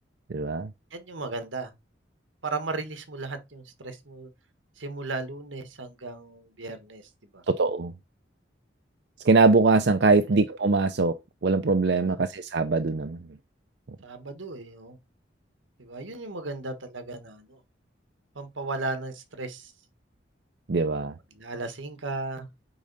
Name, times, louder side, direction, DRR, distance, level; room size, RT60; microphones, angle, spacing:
voice 1, 0.3-0.7 7.5-7.9 9.2-11.2 11.4-13.2 20.7-21.1, right 3 dB, 60° right, 0.5 m, -22 dB
voice 2, 0.9-1.7 2.4-4.3 4.8-7.0 7.3-7.4 11.9-12.2 14.0-15.0 15.8-17.6 18.3-19.7 21.3-22.5, right 3 dB, 90° right, 1.5 m, -36 dB
8.7 x 3.7 x 5.4 m
head